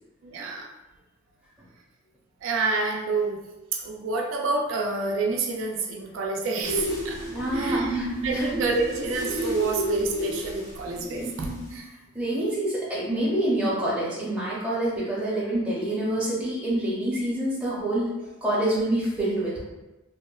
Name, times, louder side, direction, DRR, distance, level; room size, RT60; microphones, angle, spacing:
voice 1, 0.2-0.7 2.4-3.4 3.7-7.2 7.5-8.0 8.2-11.9, right 3 dB, 75° right, 1 dB, 0.4 m, -28 dB
sound 1, 6.6-11.8, right 1 dB, 75° left, 1.4 m, -31 dB
voice 2, 7.3-8.5 12.1-18.1 18.4-19.6, right 1 dB, 5° right, -8 dB, 0.6 m, -27 dB
2.8 x 2.1 x 2.3 m, 1.0 s
head